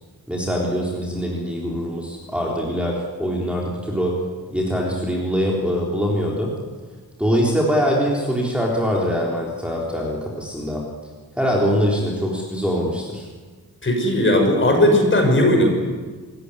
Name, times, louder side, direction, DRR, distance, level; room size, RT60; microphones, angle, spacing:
voice 1, 0.3-4.2 4.5-6.5 7.2-10.8 11.4-13.3, equal, 5° right, -4 dB, 3.7 m, -23 dB
voice 2, 13.8-15.7, left 1 dB, 30° left, 3 dB, 6.3 m, -17 dB
27.5 x 15.0 x 9.9 m, 1.4 s
wide cardioid pair, 150°, 37 cm